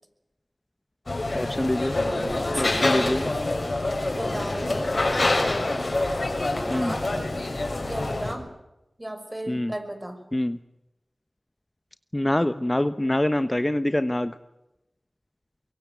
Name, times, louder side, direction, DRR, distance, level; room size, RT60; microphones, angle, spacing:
sound 1, 1.1-8.3, left 2 dB, 55° left, 6.1 m, -26 dB
voice 1, 1.3-2.0 2.6-3.2 6.7-6.9 9.5-9.7 10.3-10.6 12.1-14.3, left 1 dB, 25° left, 11 dB, 1.1 m, -25 dB
voice 2, 2.0-3.4 4.1-4.9 6.6-7.3 7.8-8.5 9.0-10.2, right 1 dB, 25° right, 7 dB, 5.9 m, -36 dB
24.0 x 23.0 x 9.2 m, 0.92 s
wide cardioid pair, 45°, 0 cm